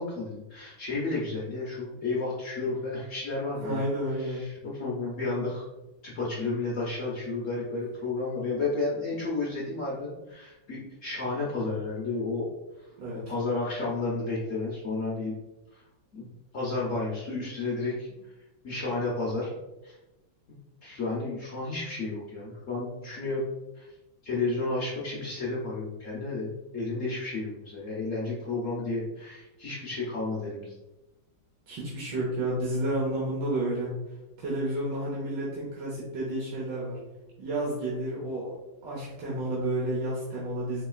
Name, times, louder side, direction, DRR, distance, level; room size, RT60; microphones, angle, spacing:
voice 1, 0.0-3.9 4.2-5.6 6.0-12.5 13.3-15.4 15.7-15.8 16.1-18.1 18.6-19.5 19.8-20.0 20.5-23.4 23.8-23.9 24.2-30.8, left 3 dB, 60° left, -5 dB, 0.8 m, -32 dB
voice 2, 3.6-4.5 13.0-13.2 31.7-33.9 34.4-37.0 37.4-38.5 38.8-40.8, right 1 dB, 70° right, -6 dB, 1.5 m, -31 dB
4.6 x 3.1 x 2.3 m, 1.0 s
omnidirectional pair, 2.2 m